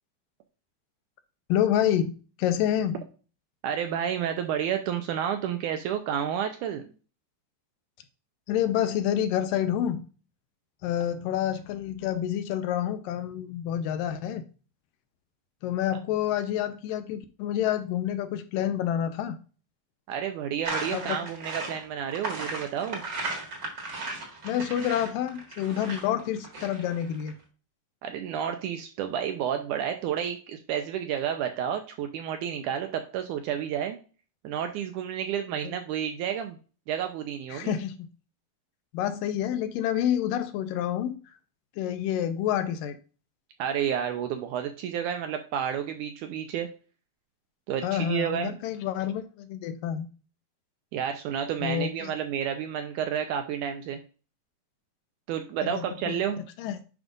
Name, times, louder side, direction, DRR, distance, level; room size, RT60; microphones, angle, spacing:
voice 1, 1.5-2.1 2.4-3.0 8.5-10.1 10.8-14.5 15.6-19.4 20.9-21.2 24.4-27.4 35.6-35.7 37.5-38.1 38.9-41.4 41.8-43.0 47.8-50.1 51.6-52.1 55.6-56.8, left 10 dB, 85° left, 2.2 m, -28 dB
voice 2, 3.6-6.8 20.1-23.0 28.0-34.0 34.4-36.6 36.9-37.8 43.6-46.7 47.7-48.5 50.9-54.0 55.3-56.4, right 9 dB, 80° right, 1.9 m, -30 dB
sound 1, 20.6-27.3, right 3 dB, 40° right, 1.7 m, -36 dB
9.8 x 5.2 x 2.4 m
omnidirectional pair, 4.0 m